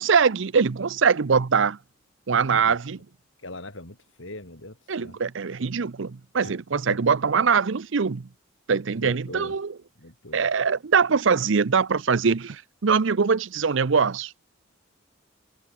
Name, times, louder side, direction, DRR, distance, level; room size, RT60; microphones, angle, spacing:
voice 1, 0.0-1.8 2.3-3.0 4.9-8.3 8.7-9.8 10.3-14.3, right 5 dB, 65° right, 0.6 m, -22 dB
voice 2, 3.4-5.2 6.4-6.5 6.9-7.0 9.0-9.5 10.0-10.5, left 2 dB, 70° left, 5.6 m, -40 dB
head